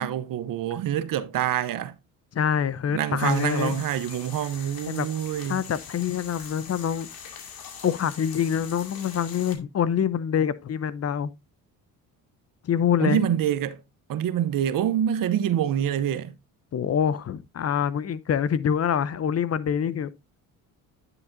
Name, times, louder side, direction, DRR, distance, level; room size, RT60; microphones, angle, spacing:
voice 1, 0.0-1.9 2.9-5.7 13.0-13.8 14.1-16.3, right 10 dB, 55° right, 0.9 m, -26 dB
voice 2, 2.3-3.8 4.9-5.1 5.5-7.1 7.8-11.3 12.6-13.3 16.7-20.1, left 8 dB, 40° left, 0.7 m, -25 dB
sound 1, 3.2-9.5, left 7 dB, 60° left, 2.3 m, -42 dB
9.8 x 6.9 x 2.6 m
supercardioid pair, 75°, 40 cm